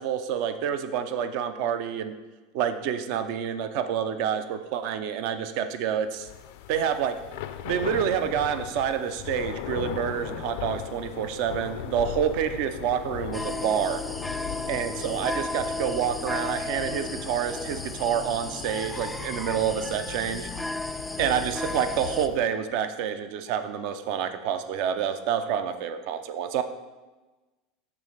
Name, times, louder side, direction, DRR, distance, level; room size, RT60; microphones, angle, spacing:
voice 1, 0.0-2.1 2.5-6.3 6.7-7.2 7.6-14.0 14.7-20.5 21.2-26.6, right 8 dB, 65° right, 10 dB, 0.5 m, -28 dB
Thunder / Rain, 6.2-22.5, left 11 dB, 70° left, 0.4 m, -38 dB
sound 1, 13.3-22.3, left 2 dB, 5° left, 0.4 m, -34 dB
6.9 x 3.2 x 5.6 m, 1.2 s
hypercardioid pair, 95°, 0 cm